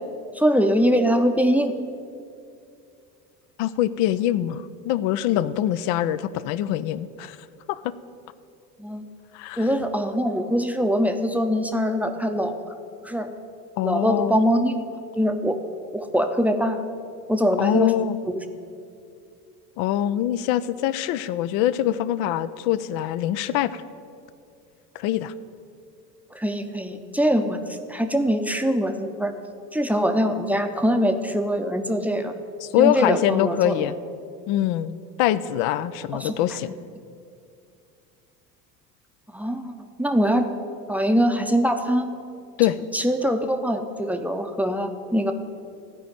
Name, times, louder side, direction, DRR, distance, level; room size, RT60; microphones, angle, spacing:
voice 1, 0.3-1.7 8.8-9.1 9.6-12.6 13.0-13.3 13.8-14.8 15.2-15.6 15.9-16.8 17.3-17.9 18.3-18.4 26.3-29.3 29.7-32.3 32.8-33.9 36.1-36.3 39.3-40.5 40.9-42.1 42.9-45.3, equal, 5° right, 6 dB, 0.7 m, -23 dB
voice 2, 3.6-7.4 7.7-7.9 9.3-9.7 13.8-14.4 17.6-18.2 19.8-23.8 24.9-25.3 32.6-34.0 34.5-36.8 42.6-42.8, left 12 dB, 50° left, 14 dB, 0.5 m, -24 dB
14.0 x 5.1 x 9.0 m, 2.4 s
figure-of-eight pair, 70°, 49 cm